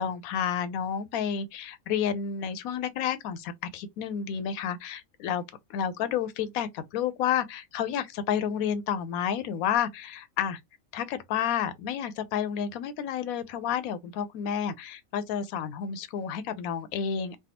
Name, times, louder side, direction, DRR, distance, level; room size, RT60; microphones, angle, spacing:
voice 1, 0.0-5.4 5.7-10.6 10.9-17.4, left 8 dB, 90° left, 1.0 m, -30 dB
3.3 x 2.2 x 2.8 m
omnidirectional pair, 1.4 m